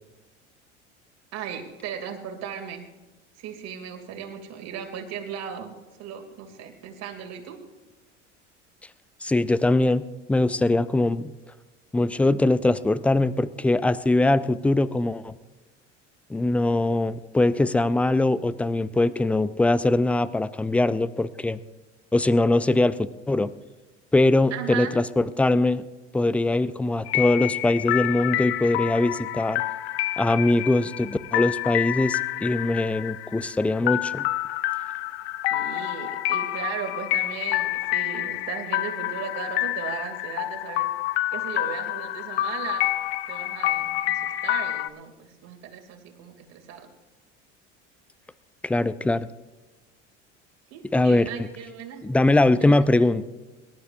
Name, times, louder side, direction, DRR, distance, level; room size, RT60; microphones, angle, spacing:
voice 1, 1.3-2.8 3.4-7.6 24.5-24.9 35.5-40.9 41.3-42.9 43.3-46.9 50.7-52.0 52.6-53.2, right 8 dB, 45° right, 3 dB, 2.7 m, -37 dB
voice 2, 9.2-10.0 10.3-11.3 11.9-15.3 16.3-21.6 22.1-23.5 24.1-25.8 26.1-29.6 30.2-34.3 48.6-49.3 50.9-51.5 52.0-53.2, left 2 dB, 5° left, 16 dB, 0.3 m, -22 dB
sound 1, 27.1-44.9, left 15 dB, 60° left, 0.8 m, -28 dB
25.0 x 12.0 x 2.6 m, 1.2 s
figure-of-eight pair, 70°, 36 cm